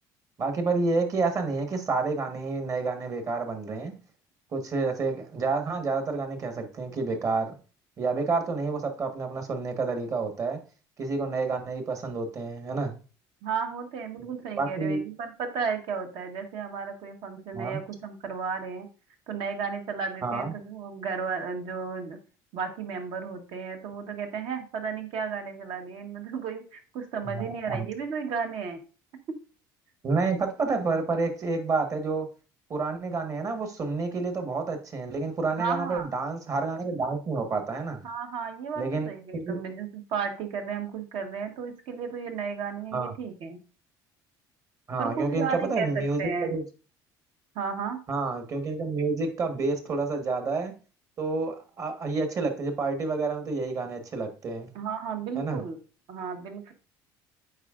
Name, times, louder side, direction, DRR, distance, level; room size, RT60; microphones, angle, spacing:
voice 1, 0.4-3.9 4.5-7.5 8.0-10.6 11.0-12.9 14.2-14.3 14.6-15.0 17.5-17.8 20.2-20.5 27.2-27.9 30.0-32.3 32.7-38.0 38.8-39.6 42.9-43.1 44.9-46.6 48.1-50.7 51.2-54.7 55.3-55.6, right 3 dB, 40° right, 6 dB, 1.3 m, -29 dB
voice 2, 13.4-18.9 19.3-22.2 22.5-28.8 29.3-29.4 35.5-36.1 38.0-43.6 45.0-45.9 46.2-46.5 47.5-48.0 54.7-55.8 56.1-56.7, right 6 dB, 70° right, 5 dB, 1.2 m, -33 dB
8.0 x 4.9 x 2.5 m, 0.36 s
cardioid pair, 105°, 9 cm